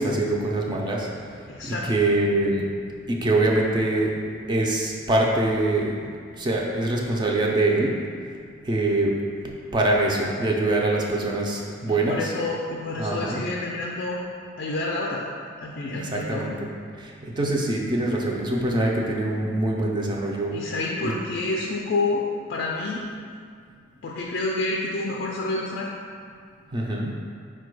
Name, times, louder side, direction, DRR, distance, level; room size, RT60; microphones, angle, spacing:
voice 1, 0.0-2.7 3.0-4.1 4.5-8.0 8.6-12.3 13.0-13.4 15.8-16.7 17.0-20.6 21.0-21.1 26.7-27.2, right 2 dB, 25° right, -2 dB, 0.4 m, -24 dB
voice 2, 1.5-1.9 11.9-14.2 14.6-15.2 15.6-16.5 20.5-23.1 24.0-25.9, left 2 dB, 55° left, -2 dB, 0.3 m, -28 dB
4.4 x 2.2 x 4.6 m, 2.2 s
head